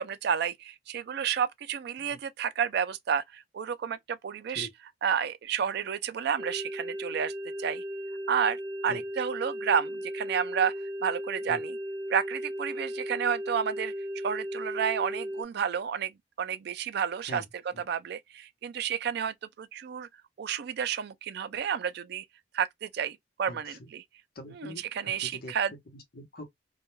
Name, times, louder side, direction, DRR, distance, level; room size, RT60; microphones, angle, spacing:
voice 1, 0.0-4.7 5.0-7.3 7.6-7.8 8.3-10.7 11.0-11.7 12.1-13.9 14.2-17.4 17.9-20.1 20.4-22.2 22.5-24.0 24.6-25.7, right 7 dB, 65° right, 0.4 m, -31 dB
sound 1, 6.4-15.4, equal, 15° right, 1.0 m, -36 dB
voice 2, 23.4-23.9 24.3-26.5, left 1 dB, 55° left, 0.8 m, -44 dB
2.2 x 2.2 x 3.0 m
head